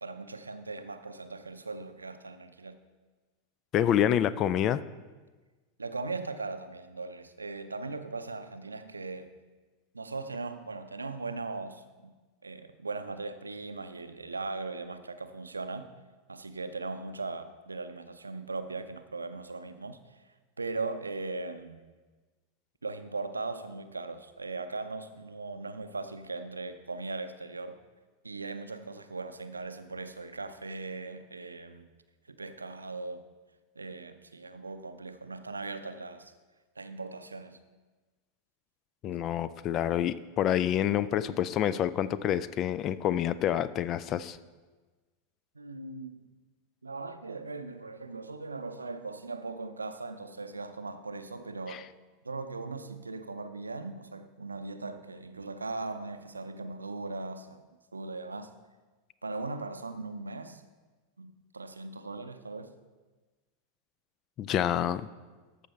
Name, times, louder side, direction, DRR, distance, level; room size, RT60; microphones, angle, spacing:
voice 1, 0.0-2.8 5.8-9.3 9.9-12.1 12.4-15.9 16.3-20.2 20.6-21.8 22.8-27.8 28.2-31.9 32.3-33.3 33.8-36.3 36.8-37.6 45.5-46.2 46.8-51.9 52.2-57.6 57.9-58.5 59.2-60.6 61.2-62.8, right 3 dB, 80° right, 10 dB, 0.5 m, -39 dB
voice 2, 3.7-4.8 39.0-44.4 51.7-51.8 64.4-65.1, left 10 dB, 35° left, 16 dB, 0.4 m, -27 dB
13.5 x 5.4 x 4.3 m, 1.3 s
figure-of-eight pair, 85°, 0 cm